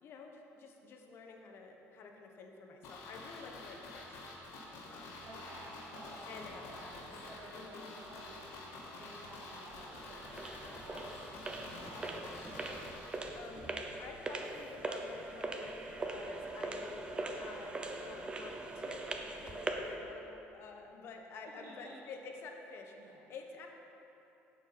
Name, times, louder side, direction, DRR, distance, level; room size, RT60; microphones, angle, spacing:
voice 1, 0.0-4.2 4.9-5.2 6.3-6.7 7.5-7.9 13.3-13.7 14.0-16.9 17.4-19.0 19.4-23.7, left 4 dB, 55° left, 3 dB, 1.1 m, -50 dB
sound 1, 2.8-13.8 14.0-14.1, left 2 dB, 85° left, 1.8 m, -48 dB
voice 2, 5.2-11.2 11.7-12.4 21.6-21.7 23.0-23.2, right 2 dB, 85° right, -8 dB, 2.0 m, -53 dB
sound 2, 9.7-20.0, right 2 dB, 20° right, 0.7 m, -41 dB
8.5 x 7.1 x 5.7 m, 3.0 s
cardioid pair, 130°, 5 cm